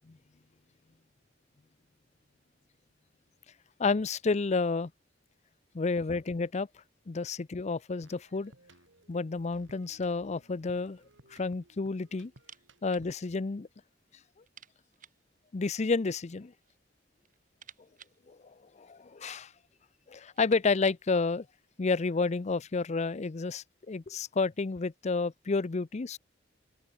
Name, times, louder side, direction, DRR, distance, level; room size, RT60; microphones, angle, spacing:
voice 1, 3.8-4.9 5.7-6.7 7.1-8.5 9.1-11.0 11.3-12.3 12.8-13.7 15.5-16.5 18.3-18.4 18.8-19.5 20.1-21.5 21.8-26.2, left 4 dB, 40° left, 0.5 m, -30 dB
sound 1, 8.0-13.4, right 1 dB, 80° right, 4.3 m, -60 dB
sound 2, 12.3-13.1 13.4-13.5 13.8-13.9 14.4-15.3 16.2-16.8 17.1-19.1 19.8-19.9 20.2-21.1, right 8 dB, 45° right, 8.0 m, -56 dB
open air
head